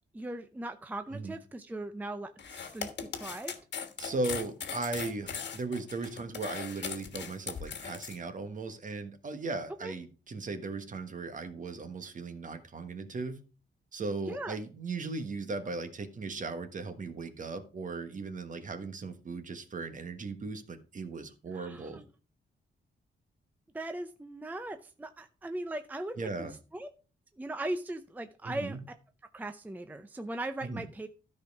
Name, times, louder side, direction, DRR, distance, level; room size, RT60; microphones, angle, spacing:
voice 1, 0.1-2.9 3.1-3.5 9.8-9.9 14.3-14.6 21.5-22.0 23.7-26.9 27.4-28.9 29.3-31.1, right 1 dB, 10° right, 8 dB, 0.5 m, -39 dB
sound 1, 2.4-8.2, left 7 dB, 70° left, 1.5 m, -39 dB
voice 2, 4.0-13.4 13.9-22.0 26.2-26.5 28.4-28.8 30.6-30.8, right 3 dB, 45° right, 9 dB, 1.3 m, -37 dB
13.0 x 5.4 x 4.7 m, 0.35 s
wide cardioid pair, 150°, 19 cm